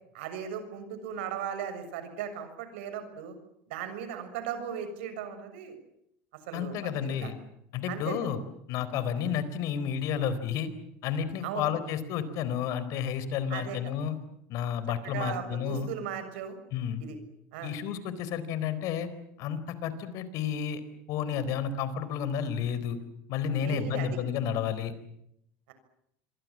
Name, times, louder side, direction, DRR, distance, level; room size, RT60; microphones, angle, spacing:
voice 1, 0.1-3.4 3.7-5.8 6.5-7.3 7.9-8.2 11.4-11.7 13.5-13.8 15.0-16.5 17.0-17.2 17.5-17.7 23.6-24.1 25.7-25.8, right 8 dB, 85° right, 10 dB, 6.8 m, -37 dB
voice 2, 6.5-7.4 7.7-8.4 8.7-10.7 11.0-14.2 14.5-15.9 16.7-17.0 17.6-19.1 19.4-20.8 21.1-23.0 23.3-24.9, left 8 dB, 60° left, 14 dB, 4.1 m, -31 dB
27.0 x 23.5 x 7.5 m, 0.76 s
supercardioid pair, 115°, 6 cm